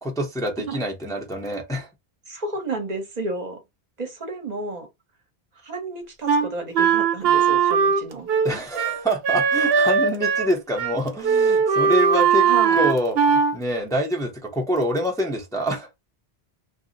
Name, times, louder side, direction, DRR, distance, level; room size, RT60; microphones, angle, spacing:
voice 1, 0.0-1.9 8.4-12.5 12.7-15.9, equal, 5° left, 0.6 m, -26 dB
voice 2, 2.3-3.6 4.0-4.9 5.5-8.3 12.4-12.8, right 2 dB, 45° right, 0.9 m, -31 dB
Wind instrument woodwind instrument, 6.3-10.5 10.8-11.0 11.2-13.6, right 6 dB, 75° right, 0.8 m, -19 dB
2.4 x 2.0 x 3.8 m
omnidirectional pair, 1.0 m